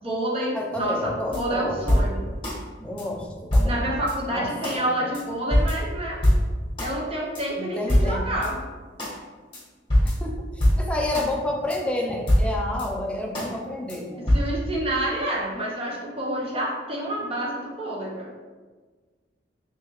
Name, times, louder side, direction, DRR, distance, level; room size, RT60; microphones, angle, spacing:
voice 1, 0.0-2.3 3.6-6.2 6.8-8.6 14.3-18.3, right 1 dB, 30° right, -3 dB, 0.7 m, -28 dB
voice 2, 0.5-1.8 2.8-3.8 4.3-4.5 4.8-5.1 7.6-8.3 10.0-14.4, left 1 dB, 5° left, 0 dB, 0.4 m, -30 dB
sound 1, 1.3-2.6 3.0-3.1 3.5-4.1 4.6-4.8 5.1-5.2 5.5-6.9 7.3-7.4 7.9-8.5 9.0-9.1 9.5-9.6 9.9-11.3 11.7-11.8 12.3-12.9 13.3-13.5 13.9-14.0 14.3-14.4, equal, 30° left, 1.1 m, -23 dB
3.5 x 3.2 x 3.0 m, 1.4 s
head